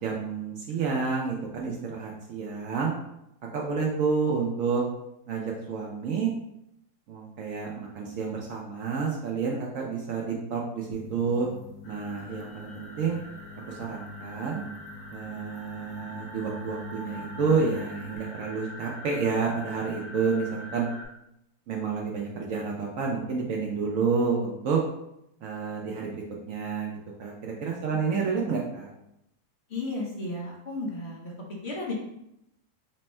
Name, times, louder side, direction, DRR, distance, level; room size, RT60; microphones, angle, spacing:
voice 1, 0.0-2.9 3.5-4.8 5.3-6.3 7.1-11.5 11.8-13.2 13.7-14.6 15.1-20.9 21.7-24.8 25.4-28.9, right 5 dB, 80° right, -1 dB, 0.7 m, -29 dB
sound 1, 10.9-18.2, left 4 dB, 70° left, 1.3 m, -46 dB
sound 2, 11.8-21.0, equal, 90° left, 1.8 m, -44 dB
voice 2, 29.7-31.3 31.6-31.9, left 2 dB, 50° left, -3 dB, 0.8 m, -34 dB
4.3 x 2.1 x 4.2 m, 0.81 s
omnidirectional pair, 2.0 m